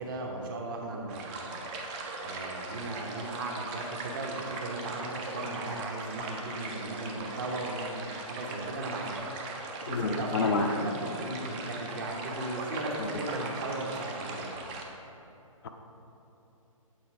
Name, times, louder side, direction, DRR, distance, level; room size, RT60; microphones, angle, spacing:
voice 1, 0.0-1.5 2.2-9.2 9.8-14.6, right 2 dB, 40° right, 0 dB, 0.9 m, -37 dB
sound 1, 1.1-14.8, right 3 dB, 20° right, 0.4 m, -39 dB
voice 2, 9.9-10.7, left 4 dB, 45° left, 5 dB, 0.5 m, -28 dB
8.0 x 4.0 x 4.6 m, 2.9 s
hypercardioid pair, 150°, 18 cm